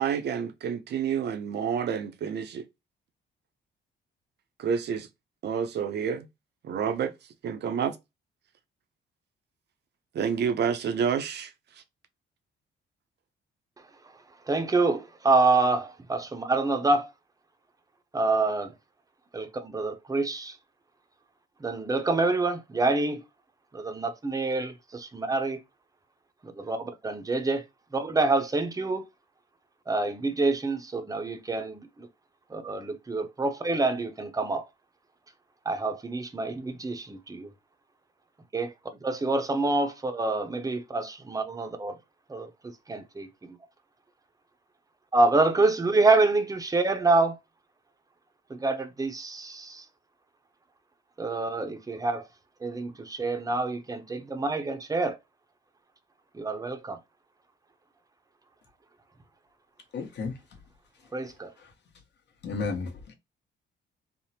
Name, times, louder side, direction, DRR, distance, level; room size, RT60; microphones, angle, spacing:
voice 1, 0.0-2.6 4.6-5.1 5.4-6.3 6.6-7.1 7.4-8.0 10.1-11.5, right 7 dB, 60° right, 0.6 m, -28 dB
voice 2, 14.5-17.1 18.1-18.7 19.3-20.5 21.6-23.2 23.7-25.6 26.6-27.6 27.9-29.0 29.9-31.8 32.5-34.6 35.7-37.5 38.5-38.7 39.0-41.9 42.3-42.5 42.9-43.3 45.1-47.3 48.5-49.8 51.2-52.2 52.6-55.2 56.4-57.0 61.1-61.5, right 3 dB, 20° right, 0.6 m, -26 dB
voice 3, 59.9-60.3 62.4-63.1, left 4 dB, 60° left, 1.0 m, -32 dB
3.3 x 2.0 x 2.8 m
cardioid pair, 90°, 20 cm